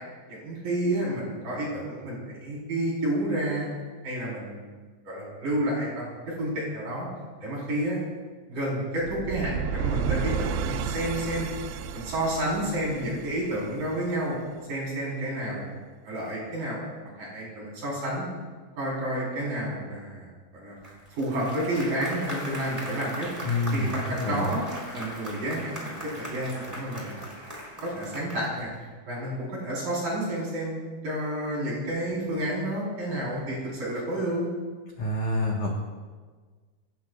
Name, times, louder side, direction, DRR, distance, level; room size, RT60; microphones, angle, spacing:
voice 1, 0.3-3.7 4.0-4.7 5.0-7.1 7.4-8.0 8.5-11.5 11.9-14.4 14.7-15.7 16.0-16.8 17.2-18.3 18.8-20.8 21.1-23.3 23.7-24.6 24.9-27.2 27.8-28.7 29.1-30.8 31.0-34.5, right 1 dB, 40° right, -5 dB, 5.5 m, -30 dB
sound 1, 9.0-14.1, right 7 dB, 85° right, 3.2 m, -32 dB
Applause, 20.8-28.7, equal, 10° right, 2.6 m, -39 dB
voice 2, 23.5-23.9 24.2-24.5 35.0-35.8, left 2 dB, 70° left, -2 dB, 1.8 m, -27 dB
27.0 x 15.5 x 2.5 m, 1.4 s
omnidirectional pair, 5.9 m